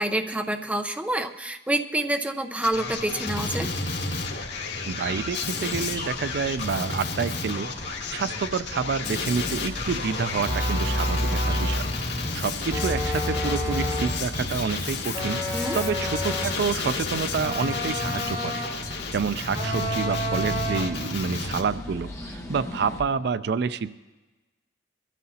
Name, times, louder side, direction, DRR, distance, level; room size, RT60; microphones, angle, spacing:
voice 1, 0.0-3.7 15.5-15.8, right 1 dB, 10° right, 4 dB, 0.7 m, -27 dB
Male speech man speaking, 2.6-21.6, left 3 dB, 85° left, 1.9 m, -32 dB
voice 2, 4.9-15.4 15.7-23.9, right 5 dB, 65° right, 14 dB, 0.4 m, -29 dB
sound 1, 5.0-23.0, left 1 dB, 20° left, 1.6 m, -40 dB
sound 2, 10.4-11.9 12.7-14.2 15.1-16.6 17.4-18.9 19.5-21.0, equal, 30° right, 6.0 m, -28 dB
22.5 x 13.5 x 2.8 m, 1.2 s
head